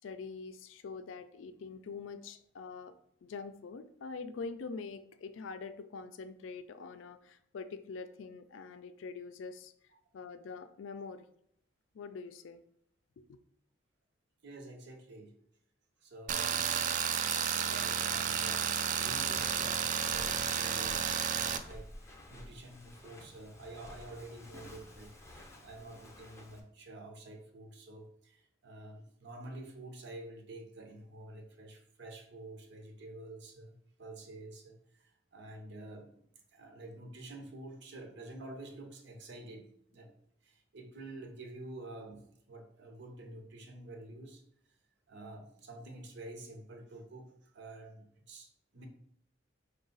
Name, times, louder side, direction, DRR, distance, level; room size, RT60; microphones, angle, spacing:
voice 1, 0.0-9.7 10.1-11.3 11.9-12.6 13.2-13.4, left 4 dB, 80° left, 11 dB, 0.4 m, -44 dB
voice 2, 14.4-15.3 16.0-36.3 36.5-40.1 40.4-44.4 45.1-47.3 47.5-48.9, right 2 dB, 65° right, 4 dB, 0.7 m, -49 dB
Tools, 16.3-21.6, right 8 dB, 40° right, 0.3 m, -32 dB
Walk footsteps, 18.9-26.6, left 1 dB, 15° left, 0.6 m, -52 dB
4.8 x 2.3 x 3.8 m, 0.71 s
head